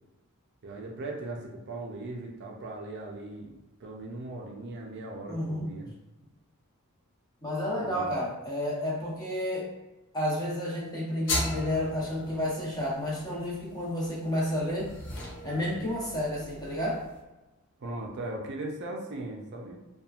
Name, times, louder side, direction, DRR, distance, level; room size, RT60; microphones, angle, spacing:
voice 1, 0.6-5.9 7.8-8.3 17.8-19.8, right 2 dB, 50° right, 0 dB, 0.4 m, -39 dB
voice 2, 5.3-5.8 7.4-9.7 10.1-14.9 15.4-17.0, left 1 dB, 20° left, -7 dB, 0.9 m, -31 dB
sound 1, 11.3-17.2, left 1 dB, 60° left, 0.7 m, -38 dB
2.9 x 2.2 x 2.4 m, 1.0 s
head